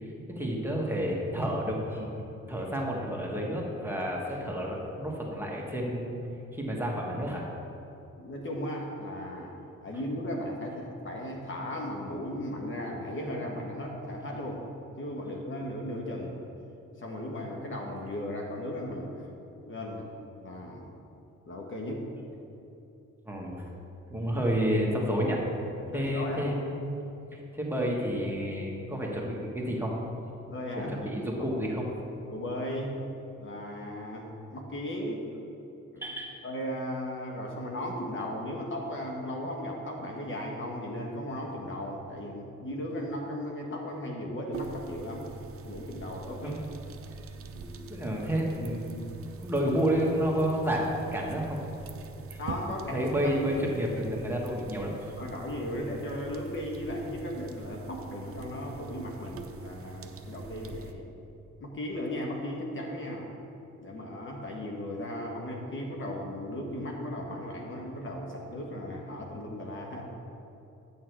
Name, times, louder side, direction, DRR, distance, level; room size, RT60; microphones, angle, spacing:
voice 1, 0.0-2.1 2.5-6.2 6.5-7.5 23.3-23.7 24.1-25.4 25.9-27.0 27.3-29.9 30.8-31.9 36.0-36.3 46.4-46.6 47.9-49.1 49.4-51.6 52.3-52.4 52.9-54.9, equal, 5° right, -3 dB, 1.5 m, -30 dB
voice 2, 8.2-9.5 9.8-14.6 15.0-16.4 17.0-19.3 19.7-20.1 20.4-20.9 21.4-22.0 25.9-26.6 30.5-31.1 32.3-33.0 33.4-35.2 35.9-36.0 36.4-45.3 45.6-46.6 47.5-47.9 52.4-53.3 55.2-61.0 61.6-63.3 63.8-70.0, left 1 dB, 40° left, 0 dB, 1.4 m, -36 dB
sound 1, 44.5-60.9, right 4 dB, 50° right, 0.7 m, -44 dB
9.3 x 6.4 x 4.7 m, 2.9 s
cardioid pair, 90°, 30 cm